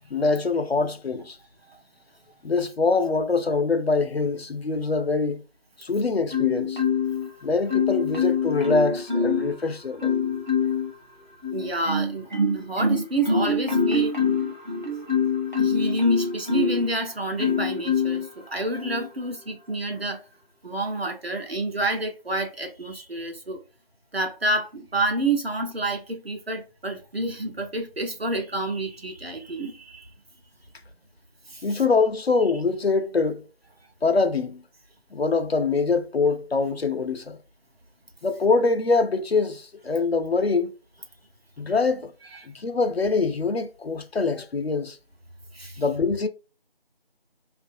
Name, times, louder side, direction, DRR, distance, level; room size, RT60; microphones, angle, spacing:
voice 1, 0.1-1.4 2.4-5.4 5.8-6.8 7.4-10.2 31.6-33.5 34.0-34.6 35.1-37.4 38.2-40.7 41.6-42.1 42.5-45.0 45.8-46.3, left 4 dB, 85° left, 0.6 m, -24 dB
Marimba xylophone, 6.3-7.3 7.7-9.5 10.0-10.9 11.4-16.9 17.4-18.3 18.8-19.1, left 4 dB, 50° right, 0.8 m, -24 dB
voice 2, 11.5-14.2 15.6-20.2 20.6-23.6 24.1-30.1 31.5-31.7 42.3-42.5 45.5-45.8, right 2 dB, 75° right, 0.9 m, -29 dB
2.6 x 2.5 x 2.6 m
figure-of-eight pair, 180°, 30 cm